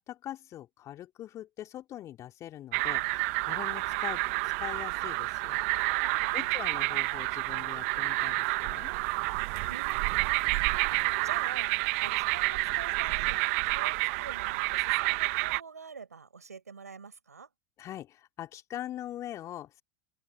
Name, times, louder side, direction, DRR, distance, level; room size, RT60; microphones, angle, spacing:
voice 1, 0.0-5.7 6.3-8.9 17.8-19.8, left 12 dB, 40° left, 3.1 m, -42 dB
sound 1, 2.7-15.6, right 27 dB, 55° right, 1.3 m, -29 dB
voice 2, 5.9-6.7 9.3-11.7 12.0-13.4 13.7-17.5, right 5 dB, 85° right, 6.6 m, -47 dB
figure-of-eight pair, 85°, 8 cm